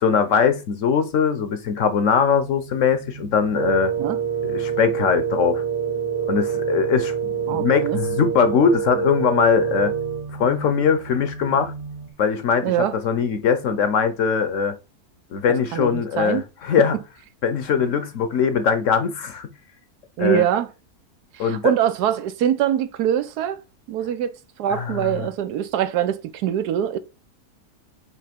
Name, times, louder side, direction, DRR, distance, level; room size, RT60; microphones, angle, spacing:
voice 1, 0.0-3.9 4.4-5.6 6.3-9.9 10.3-11.7 12.2-14.7 15.3-17.0 17.4-19.5 20.2-20.4 21.4-21.7 24.7-25.3, left 6 dB, 60° left, 1.0 m, -21 dB
sound 1, 2.1-12.1, right 4 dB, 45° right, 0.4 m, -40 dB
Wind instrument woodwind instrument, 3.5-10.3, right 8 dB, 20° right, 0.9 m, -26 dB
voice 2, 7.5-8.0 12.6-13.0 15.7-16.5 20.2-20.7 21.3-23.6 23.9-27.0, right 10 dB, 85° right, 1.3 m, -23 dB
5.7 x 3.3 x 5.1 m
omnidirectional pair, 1.6 m